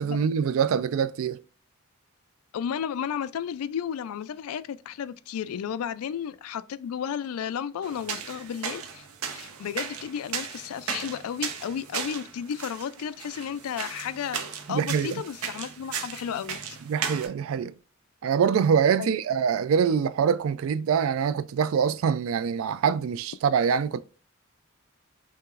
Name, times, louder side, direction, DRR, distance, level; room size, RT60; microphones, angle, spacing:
voice 1, 0.0-1.4 14.7-15.2 16.9-17.7 18.2-24.0, right 7 dB, 65° right, 0.3 m, -24 dB
voice 2, 2.5-9.0 9.3-14.4 14.7-16.8 19.0-19.2, left 8 dB, 85° left, 0.3 m, -33 dB
sound 1, 7.8-17.3, right 7 dB, 90° right, 0.8 m, -36 dB
5.7 x 3.0 x 2.4 m
head